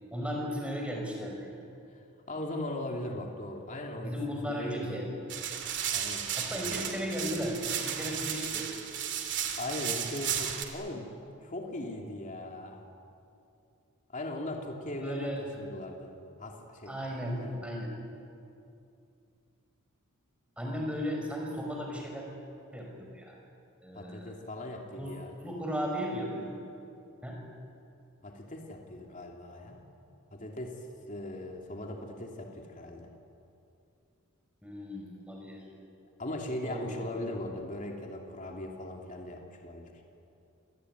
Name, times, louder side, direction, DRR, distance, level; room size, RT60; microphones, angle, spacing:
voice 1, 0.1-1.5 4.0-5.1 6.4-8.7 15.0-15.4 16.9-17.9 20.6-22.3 22.7-23.3 23.8-24.3 25.0-25.1 25.4-26.6 27.2-27.4 34.6-35.6 36.6-37.1, equal, 5° right, 0 dB, 5.4 m, -35 dB
voice 2, 1.9-4.9 5.9-7.0 9.6-11.1 11.4-12.8 14.1-16.1 16.4-17.6 23.9-25.4 28.2-29.8 30.3-33.1 36.2-39.9, left 1 dB, 35° left, 1 dB, 2.9 m, -39 dB
sound 1, 5.3-10.6, right 9 dB, 55° right, 2.7 m, -34 dB
28.0 x 19.5 x 9.7 m, 2.6 s
head